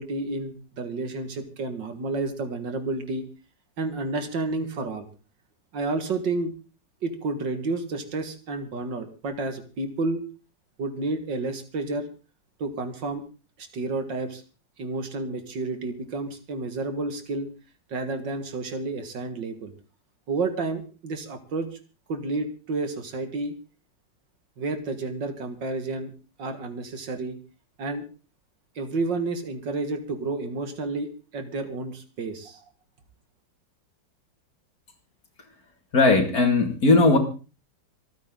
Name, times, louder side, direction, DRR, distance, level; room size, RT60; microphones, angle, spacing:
voice 1, 0.0-3.2 3.8-5.1 5.7-6.5 7.0-10.2 10.8-12.1 12.6-13.3 13.6-14.4 14.8-17.5 17.9-19.7 20.3-21.7 22.1-23.6 24.6-26.1 26.4-27.4 27.8-28.1 28.8-32.6, right 3 dB, 70° right, 8 dB, 2.4 m, -30 dB
voice 2, 35.9-37.2, left 3 dB, 50° left, 5 dB, 2.8 m, -18 dB
27.0 x 9.4 x 3.8 m, 0.34 s
omnidirectional pair, 2.1 m